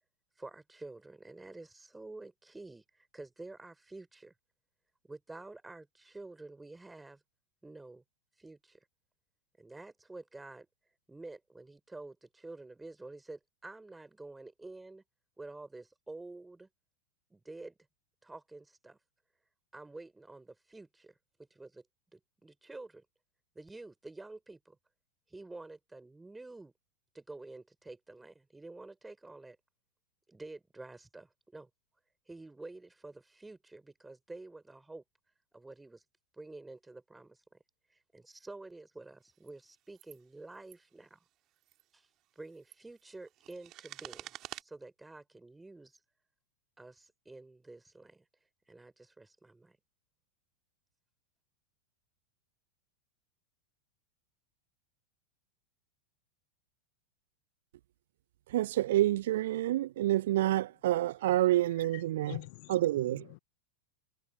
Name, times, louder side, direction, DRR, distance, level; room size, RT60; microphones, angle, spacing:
voice 1, 0.4-4.3 5.0-7.2 7.6-8.0 8.4-8.8 9.6-10.7 11.1-15.0 15.4-16.7 17.3-17.7 18.2-19.0 19.7-21.1 21.5-21.9 22.1-23.1 23.6-24.8 25.3-26.7 27.1-29.6 30.3-31.7 32.3-35.0 35.5-36.0 36.4-37.6 37.9-41.2 41.9-42.1 42.4-44.3 44.6-46.0 46.8-48.3 48.7-49.8, right 2 dB, 10° right, 5.2 m, -49 dB
sound 1, 39.3-39.5 39.9-40.2 40.5-40.8 41.6-41.8 42.4-44.6, right 15 dB, 35° right, 4.2 m, -48 dB
voice 2, 58.5-62.4 62.7-63.3, right 14 dB, 55° right, 0.4 m, -28 dB
voice 3, 61.7-63.4, left 27 dB, 45° left, 1.0 m, -46 dB
figure-of-eight pair, 90°, 0 cm